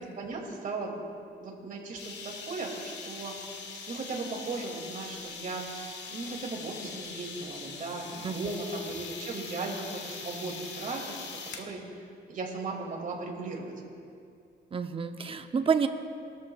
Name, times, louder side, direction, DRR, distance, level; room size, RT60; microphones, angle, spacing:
voice 1, 0.2-1.1 1.4-3.3 3.9-5.6 6.1-11.1 11.5-11.8 12.3-13.7, right 3 dB, 45° right, 0 dB, 2.5 m, -37 dB
sound 1, 2.0-11.7, left 5 dB, 75° left, 1.5 m, -42 dB
voice 2, 14.7-15.9, right 6 dB, 30° right, 8 dB, 0.7 m, -28 dB
21.0 x 13.5 x 2.4 m, 2.4 s
cardioid pair, 125°, 18 cm